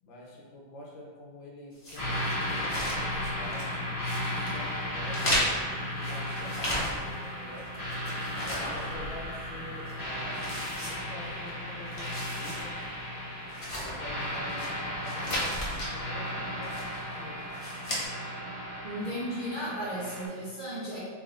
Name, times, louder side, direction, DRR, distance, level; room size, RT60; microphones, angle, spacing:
voice 1, 0.0-3.7 4.2-5.4 5.7-7.7 8.4-10.5 10.8-12.8 13.7-16.8 17.1-17.4, equal, 75° left, -2 dB, 1.5 m, -47 dB
sound 1, 1.8-3.7 4.0-4.6 5.1-7.2 7.6-9.5 9.8-9.9 10.3-11.5 11.8-12.6 13.0-13.1 13.5-14.7 15.0-15.9 16.6-17.1 17.5-18.0, equal, 55° left, 0.3 m, -35 dB
sound 2, 1.9-20.3, left 1 dB, 15° left, 1.1 m, -35 dB
voice 2, 18.8-21.0, equal, 30° right, -11 dB, 1.1 m, -34 dB
3.9 x 3.4 x 3.7 m, 1.5 s
omnidirectional pair, 2.2 m